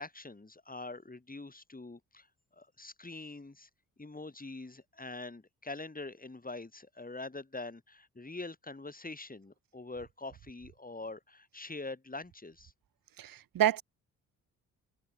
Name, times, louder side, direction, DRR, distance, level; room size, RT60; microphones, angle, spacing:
voice 1, 0.0-2.3 2.6-3.7 4.0-12.7, left 2 dB, 20° left, 6.6 m, -44 dB
voice 2, 13.2-13.8, right 11 dB, 60° right, 1.3 m, -28 dB
hypercardioid pair, 50°, 39 cm